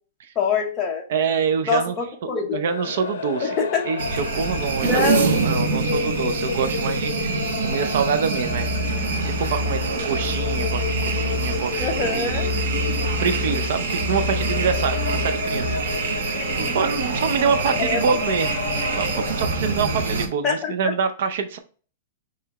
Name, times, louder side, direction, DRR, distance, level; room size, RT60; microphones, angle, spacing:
voice 1, 0.4-1.0 1.7-2.6 3.6-3.8 4.8-5.4 11.8-12.5 16.3-16.8 17.6-18.2 20.4-20.7, left 4 dB, 15° left, 0 dB, 0.9 m, -24 dB
voice 2, 1.1-1.9 2.5-3.6 3.8-5.0 5.4-16.2 16.6-18.6 19.0-21.6, right 6 dB, 50° right, 8 dB, 0.5 m, -26 dB
sound 1, 2.7-20.2, left 6 dB, 75° left, 0.6 m, -32 dB
sound 2, 4.0-20.3, right 4 dB, 70° right, 0.9 m, -26 dB
Musical instrument, 8.5-16.0, left 3 dB, 35° right, 2.0 m, -29 dB
5.7 x 3.2 x 2.9 m, 0.41 s
supercardioid pair, 180°, 0 cm